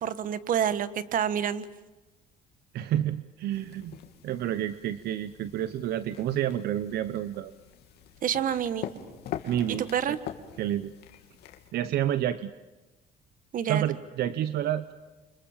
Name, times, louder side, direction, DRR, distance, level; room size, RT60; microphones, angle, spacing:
voice 1, 0.0-1.7 8.2-8.9 9.7-10.2 13.5-13.9, right 9 dB, 55° right, 14 dB, 1.5 m, -28 dB
voice 2, 2.7-4.0 4.2-7.5 9.5-9.9 10.6-10.9 11.7-12.5 13.7-14.9, right 11 dB, 70° right, 13 dB, 1.0 m, -29 dB
sound 1, 3.5-11.7, left 10 dB, 75° left, 2.9 m, -44 dB
29.5 x 25.5 x 7.4 m, 1.1 s
cardioid pair, 110°, 17 cm